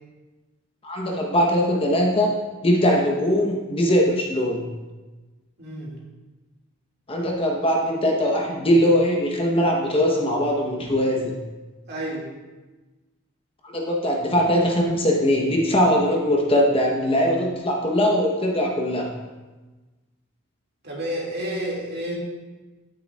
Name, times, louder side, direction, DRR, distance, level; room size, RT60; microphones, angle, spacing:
voice 1, 0.8-4.6 7.1-11.3 13.6-19.1, equal, 25° left, -1 dB, 0.8 m, -21 dB
voice 2, 5.6-5.9 11.9-12.3 20.8-22.1, right 1 dB, 50° right, -4 dB, 1.9 m, -30 dB
9.7 x 8.7 x 2.3 m, 1.2 s
head